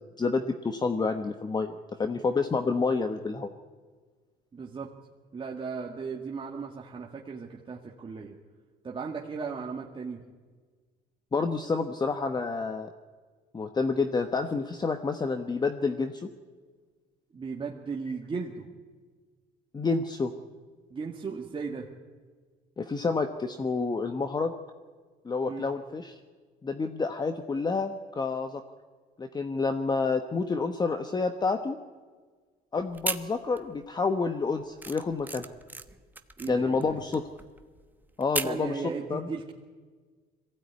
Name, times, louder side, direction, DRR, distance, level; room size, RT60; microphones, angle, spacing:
voice 1, 0.2-3.5 11.3-12.9 13.5-16.3 19.7-20.3 22.8-24.5 25.2-26.1 26.6-28.6 29.2-31.8 32.7-35.4 36.5-37.2 38.2-38.8 39.1-39.3, left 4 dB, 25° left, 8 dB, 1.1 m, -29 dB
voice 2, 4.5-4.9 5.3-8.4 8.8-10.2 17.3-18.6 20.9-21.9 25.5-25.7 36.4-37.0 38.4-39.5, right 5 dB, 30° right, -1 dB, 2.0 m, -36 dB
sound 1, 32.9-33.8 34.2-38.7, right 2 dB, 10° right, 1.1 m, -36 dB
22.0 x 16.0 x 9.6 m, 1.5 s
cardioid pair, 110°, 17 cm